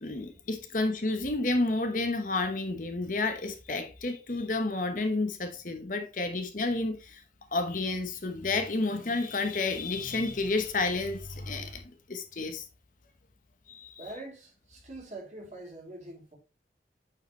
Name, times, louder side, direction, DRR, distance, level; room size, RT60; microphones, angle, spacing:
voice 1, 0.0-7.2 7.5-12.7 13.7-14.0, left 2 dB, 45° left, 1.0 m, -30 dB
voice 2, 14.0-16.4, right 2 dB, 40° right, 2.8 m, -44 dB
8.5 x 4.8 x 3.0 m
head